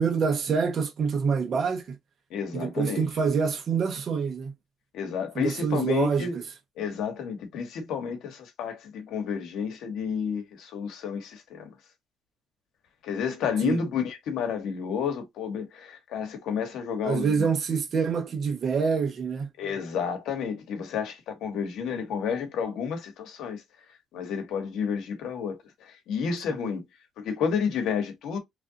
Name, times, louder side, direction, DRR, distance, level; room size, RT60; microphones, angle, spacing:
voice 1, 0.0-1.8 2.5-4.5 5.4-6.3 13.6-13.8 17.0-19.5 26.5-26.6, right 6 dB, 55° right, 1.1 m, -26 dB
voice 2, 2.3-3.1 4.9-6.4 6.8-11.8 13.0-17.5 19.6-23.6 24.1-26.8 27.2-28.4, left 6 dB, 85° left, 1.2 m, -31 dB
3.2 x 2.6 x 3.8 m
cardioid pair, 90°, 0 cm